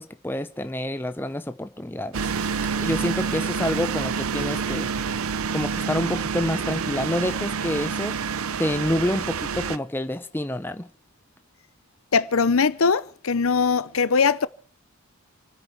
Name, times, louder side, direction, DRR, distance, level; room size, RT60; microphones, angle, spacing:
voice 1, 0.0-2.3 2.8-4.9 5.5-8.2 8.6-10.9, left 1 dB, 10° left, 0.7 m, -28 dB
sound 1, 2.1-9.8, right 5 dB, 80° right, 0.7 m, -28 dB
voice 2, 12.1-14.5, left 5 dB, 75° left, 0.7 m, -21 dB
29.0 x 9.8 x 4.6 m
head